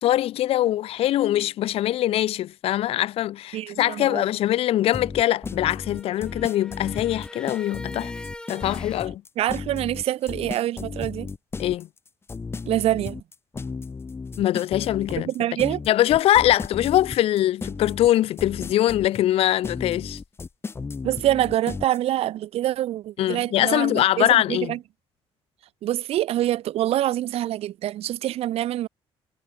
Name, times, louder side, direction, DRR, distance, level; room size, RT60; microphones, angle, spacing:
voice 1, 0.0-8.1 8.5-9.2 11.6-11.9 14.4-15.3 15.9-20.2 23.2-24.7, left 13 dB, 70° left, 0.6 m, -22 dB
voice 2, 3.5-4.2 9.4-11.3 12.7-13.2 15.2-15.8 21.0-24.8 25.8-28.9, right 13 dB, 75° right, 1.4 m, -25 dB
sound 1, 4.9-22.0, left 4 dB, 25° left, 0.9 m, -34 dB
sound 2, 5.5-9.1, left 1 dB, 10° left, 5.3 m, -42 dB
cardioid pair, 115°, 10 cm